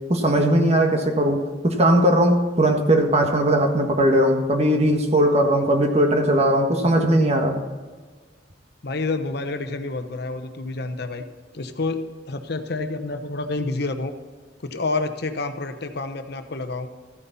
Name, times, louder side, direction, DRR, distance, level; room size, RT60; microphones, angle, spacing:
voice 1, 0.1-7.6, right 1 dB, 35° right, 3 dB, 1.5 m, -19 dB
voice 2, 8.8-11.2 11.5-14.1 14.6-16.9, left 3 dB, 60° left, 8 dB, 1.0 m, -28 dB
13.5 x 9.6 x 4.2 m, 1.4 s
head